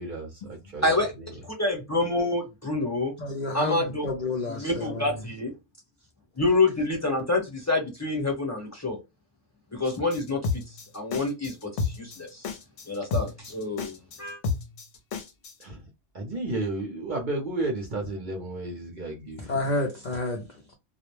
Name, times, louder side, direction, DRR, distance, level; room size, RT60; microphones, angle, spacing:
voice 1, 0.0-1.3 15.6-15.8 16.1-19.5, right 2 dB, 50° right, 0.7 m, -33 dB
voice 2, 1.6-3.1 3.5-4.0 4.6-5.5 6.4-9.0 9.7-10.4 10.9-11.5 12.0-12.3 12.9-14.4, left 2 dB, 15° left, 0.8 m, -27 dB
voice 3, 3.2-5.2 19.4-20.7, left 2 dB, 55° left, 0.5 m, -30 dB
sound 1, 9.8-15.6, left 4 dB, 70° left, 0.9 m, -31 dB
2.3 x 2.0 x 3.0 m
omnidirectional pair, 1.3 m